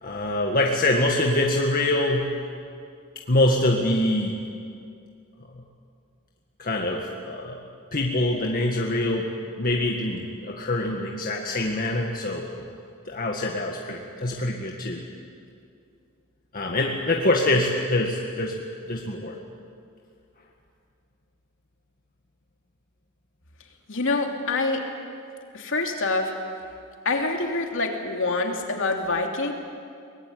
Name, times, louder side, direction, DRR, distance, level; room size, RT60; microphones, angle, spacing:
voice 1, 0.0-2.3 3.3-4.4 6.6-7.6 7.9-9.3 9.6-12.4 13.1-15.0 16.5-18.5 18.9-19.4, left 1 dB, 40° left, 0 dB, 1.8 m, -24 dB
voice 2, 23.9-24.8 25.5-26.3 27.0-29.5, left 3 dB, 60° left, 2 dB, 3.0 m, -26 dB
24.0 x 20.5 x 9.5 m, 2.4 s
head